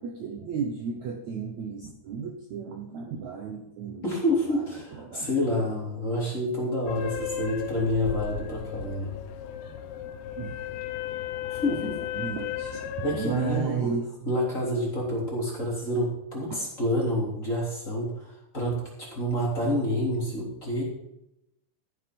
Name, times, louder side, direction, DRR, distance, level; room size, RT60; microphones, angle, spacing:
voice 1, 0.0-5.8 10.4-10.6 12.1-14.3 16.5-16.6, right 6 dB, 80° right, 2 dB, 1.6 m, -34 dB
voice 2, 4.0-9.1 11.5-12.0 13.0-13.9 14.2-20.8, left 1 dB, 20° left, -4 dB, 3.2 m, -28 dB
sound 1, 6.9-13.7, left 9 dB, 75° left, 2.8 m, -35 dB
14.5 x 7.7 x 5.3 m, 0.84 s
omnidirectional pair, 5.0 m